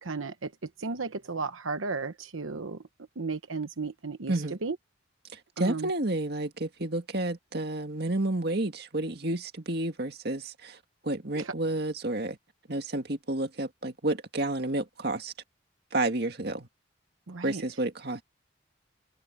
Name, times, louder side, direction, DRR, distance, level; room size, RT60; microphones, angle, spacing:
voice 1, 0.0-2.8 3.2-4.8 5.6-5.9 11.3-11.5 17.3-17.8, right 4 dB, 85° right, 1.0 m, -34 dB
voice 2, 5.6-10.8 11.0-12.4 12.7-15.3 15.9-16.7 17.4-18.2, right 2 dB, 50° right, 2.1 m, -30 dB
open air
head